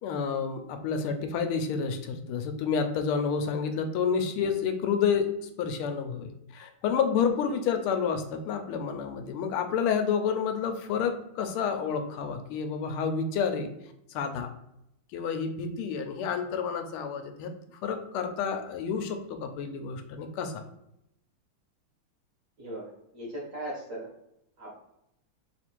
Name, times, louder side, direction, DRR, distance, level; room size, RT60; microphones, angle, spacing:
voice 1, 0.0-5.3 5.6-13.7 14.1-14.5 15.1-17.5 17.8-20.6, left 6 dB, 85° left, 7 dB, 1.5 m, -29 dB
voice 2, 22.6-24.1 24.6-24.7, right 1 dB, 50° right, -4 dB, 1.1 m, -38 dB
3.5 x 2.5 x 4.4 m, 0.80 s
omnidirectional pair, 2.3 m